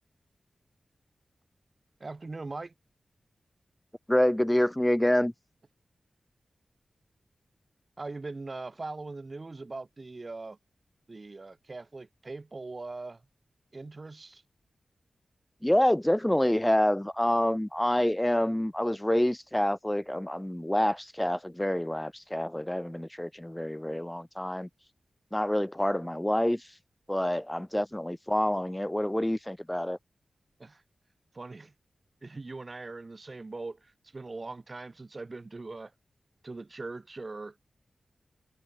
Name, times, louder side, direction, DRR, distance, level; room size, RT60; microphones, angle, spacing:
voice 1, 2.0-2.7 8.0-10.6 11.1-13.2 13.7-14.4 30.6-30.8 31.3-31.7 32.2-35.9 36.4-37.6, right 3 dB, 35° right, 6.3 m, -41 dB
voice 2, 4.1-5.3 15.6-24.7 25.3-26.6 27.1-30.0, left 1 dB, 5° left, 1.3 m, -27 dB
wide cardioid pair, 135°, 0 cm